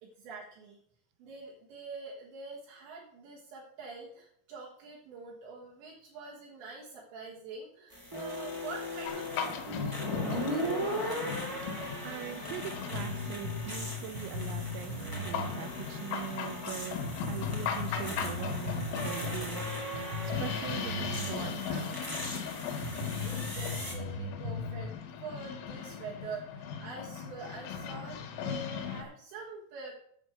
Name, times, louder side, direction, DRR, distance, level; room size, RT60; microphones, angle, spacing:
voice 1, 0.0-0.8 1.2-11.2 23.2-24.9 25.2-29.9, right 4 dB, 65° right, -4 dB, 3.6 m, -45 dB
sound 1, 7.9-23.9, equal, 25° right, 0.5 m, -39 dB
sound 2, 9.1-29.0, left 7 dB, 80° left, 4.0 m, -39 dB
voice 2, 12.0-17.0 17.3-19.6 20.2-22.0, right 11 dB, 85° right, 10 dB, 3.5 m, -42 dB
sound 3, 12.9-15.5 15.8-15.9 16.5-16.6 17.0-21.3 21.6-21.7 22.3-22.4 22.8-24.9, left 3 dB, 45° right, 2.3 m, -38 dB
10.5 x 6.5 x 6.5 m, 0.68 s
omnidirectional pair, 5.9 m